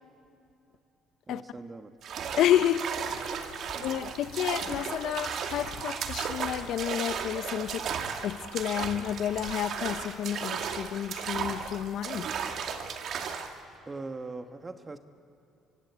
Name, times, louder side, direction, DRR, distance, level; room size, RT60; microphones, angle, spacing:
voice 1, 1.3-1.9 3.6-3.8 13.9-15.0, right 3 dB, 25° right, 1.3 m, -41 dB
sound 1, 2.0-13.6, right 6 dB, 60° right, 2.4 m, -35 dB
voice 2, 2.4-2.8 3.1-3.5 3.8-7.8 8.2-12.3, left 11 dB, 70° left, 0.9 m, -30 dB
26.5 x 25.0 x 8.3 m
supercardioid pair, 75°, 0 cm